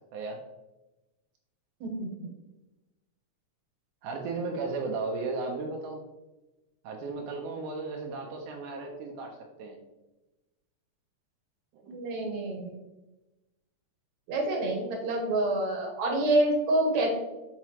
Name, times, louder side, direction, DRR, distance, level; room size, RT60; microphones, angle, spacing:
voice 1, 0.1-0.4 4.0-6.0 6.8-9.8 11.7-12.0, right 3 dB, 85° right, 1 dB, 2.2 m, -35 dB
voice 2, 1.8-2.3 11.9-12.8 14.3-17.2, right 1 dB, 70° right, 0 dB, 2.3 m, -27 dB
5.7 x 5.6 x 3.0 m, 1.0 s
omnidirectional pair, 3.5 m